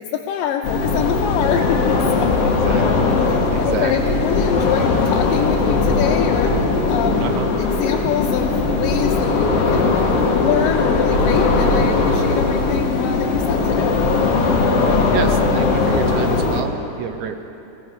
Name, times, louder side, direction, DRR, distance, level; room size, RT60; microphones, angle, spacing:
voice 1, 0.0-2.6 3.2-7.3 7.6-10.0 10.4-14.0, left 9 dB, 90° left, 2 dB, 2.3 m, -25 dB
sound 1, 0.6-16.6, left 3 dB, 55° left, 2.0 m, -19 dB
voice 2, 2.4-3.1 3.5-4.1 7.2-7.5 15.1-17.4, right 8 dB, 75° right, 7 dB, 1.9 m, -28 dB
sound 2, 3.5-15.6, left 2 dB, 20° left, 3.5 m, -37 dB
20.0 x 17.5 x 3.6 m, 2.8 s
omnidirectional pair, 3.8 m